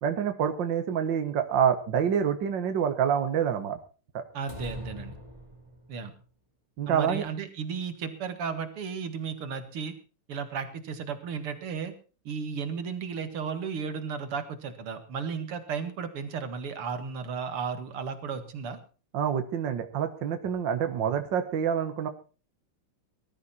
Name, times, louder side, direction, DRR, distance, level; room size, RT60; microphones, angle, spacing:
voice 1, 0.0-3.8 4.1-4.2 6.8-7.3 19.1-22.1, right 8 dB, 60° right, 8 dB, 2.0 m, -27 dB
voice 2, 4.3-5.2 5.9-6.1 6.9-10.0 10.3-11.9 12.2-18.8, right 6 dB, 85° right, 9 dB, 2.8 m, -34 dB
sound 1, 4.5-6.1, right 1 dB, 15° right, 4.1 m, -41 dB
19.0 x 13.0 x 4.3 m, 0.36 s
omnidirectional pair, 2.4 m